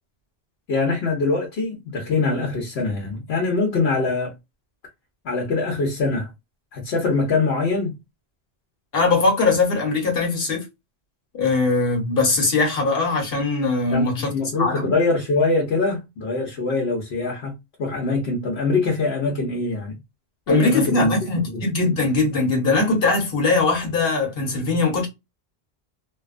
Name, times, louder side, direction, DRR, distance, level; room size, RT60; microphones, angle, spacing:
voice 1, 0.7-4.3 5.2-6.3 6.7-7.9 13.9-17.5 17.8-20.0 20.5-21.2 21.5-21.6, left 3 dB, 85° left, 1.1 m, -23 dB
voice 2, 8.9-10.7 11.3-14.3 14.6-14.9 20.5-25.1, left 3 dB, 65° left, 1.2 m, -21 dB
2.7 x 2.2 x 2.4 m
omnidirectional pair, 1.0 m